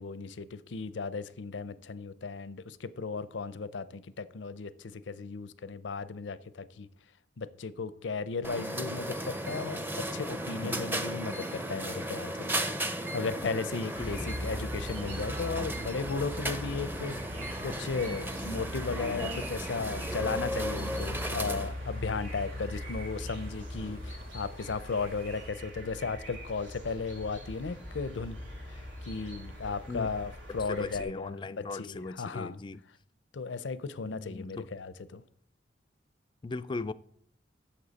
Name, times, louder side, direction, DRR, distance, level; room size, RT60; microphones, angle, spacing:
voice 1, 0.0-6.9 7.4-12.6 12.8-28.4 28.7-32.6 33.3-35.2, left 4 dB, 85° left, 0.6 m, -36 dB
sound 1, 8.4-21.7, equal, 10° right, 0.6 m, -35 dB
voice 2, 10.6-10.9 13.7-14.1 29.9-30.1 30.5-32.8 34.1-34.7 36.4-36.9, left 3 dB, 25° left, 0.3 m, -39 dB
sound 2, 12.0-25.5, right 2 dB, 60° right, 4.1 m, -56 dB
sound 3, 13.9-31.0, equal, 90° right, 4.8 m, -40 dB
11.5 x 7.4 x 4.1 m
head